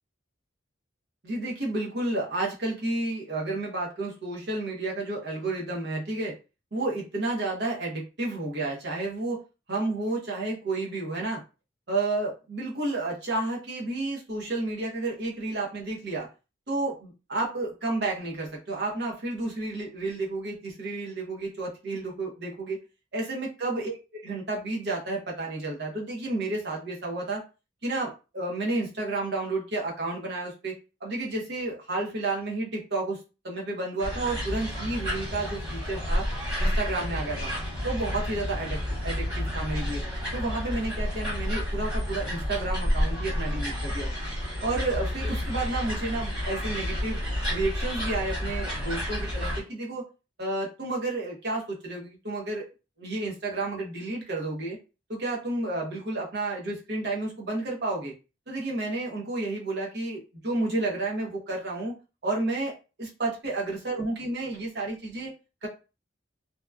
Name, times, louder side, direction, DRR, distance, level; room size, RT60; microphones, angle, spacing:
voice 1, 1.2-6.3 6.7-9.4 9.7-11.4 11.9-16.3 16.7-22.8 23.1-24.0 24.2-27.4 27.8-30.7 31.0-36.3 36.6-37.5 37.8-40.0 40.3-44.2 44.6-47.2 47.5-50.0 50.4-52.7 53.0-54.8 55.1-58.1 58.5-61.9 62.2-62.7 63.0-65.3 65.6-65.7, right 2 dB, 60° right, -1 dB, 0.8 m, -31 dB
sound 1, 34.0-49.6, equal, 25° right, 1.5 m, -30 dB
2.8 x 2.3 x 2.2 m, 0.31 s
head